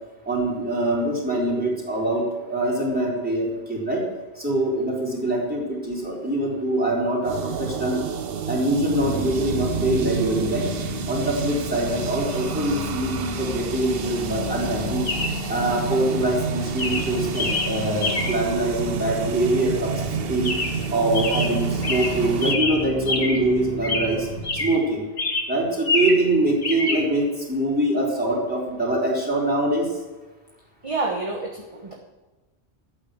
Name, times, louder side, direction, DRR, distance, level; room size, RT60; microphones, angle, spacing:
voice 1, 0.3-4.0 4.4-8.0 8.5-10.7 11.1-15.1 15.5-19.9 20.3-20.5 20.9-24.3 24.6-25.0 25.5-29.9, right 1 dB, 10° right, -5 dB, 4.1 m, -24 dB
sound 1, 7.2-22.6, right 7 dB, 65° right, 0.9 m, -30 dB
sound 2, 8.9-24.7, left 2 dB, 80° right, 4.6 m, -33 dB
Chirp tweet, 12.3-12.4 15.1-15.5 16.2-16.4 16.8-18.5 20.4-20.9 21.1-23.5 23.8-24.9 25.2-26.3 26.6-27.0, left 3 dB, 65° left, 1.9 m, -27 dB
voice 2, 30.8-31.9, right 3 dB, 30° right, 0 dB, 1.3 m, -29 dB
12.5 x 8.9 x 6.6 m, 1.2 s
omnidirectional pair, 1.1 m